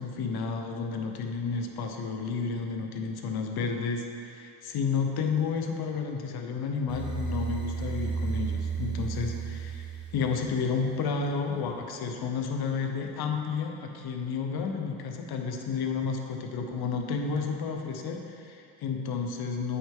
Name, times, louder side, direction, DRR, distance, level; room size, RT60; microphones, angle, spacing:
voice 1, 0.0-19.8, left 5 dB, 55° left, 3 dB, 1.0 m, -31 dB
sound 1, 6.9-11.0, right 5 dB, 10° right, 1.9 m, -33 dB
8.4 x 5.8 x 3.7 m, 2.5 s
supercardioid pair, 70°, 44 cm